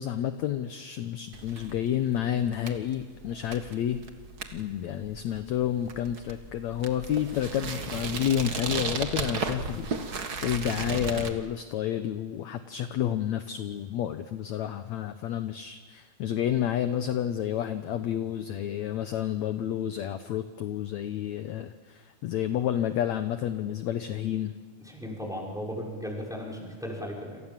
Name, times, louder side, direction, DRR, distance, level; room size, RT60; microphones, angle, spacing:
voice 1, 0.0-4.0 4.5-9.9 10.4-24.5, left 10 dB, 70° left, 9 dB, 1.8 m, -30 dB
sound 1, 1.3-11.3, right 4 dB, 50° right, 1.1 m, -35 dB
voice 2, 24.9-27.4, equal, ahead, -2 dB, 5.9 m, -36 dB
28.0 x 28.0 x 7.4 m, 1.5 s
omnidirectional pair, 4.2 m